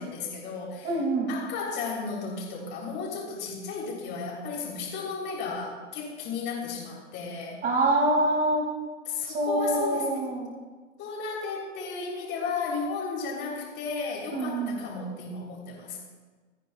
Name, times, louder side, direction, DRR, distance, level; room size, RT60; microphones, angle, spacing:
voice 1, 0.0-1.0 1.3-7.6 9.1-10.2 11.0-16.1, left 4 dB, 30° left, -2 dB, 3.8 m, -34 dB
voice 2, 0.8-1.3 7.6-8.7 9.2-10.5 14.3-14.8, right 2 dB, 20° right, 0 dB, 2.7 m, -25 dB
26.5 x 9.9 x 2.5 m, 1.4 s
hypercardioid pair, 120°, 39 cm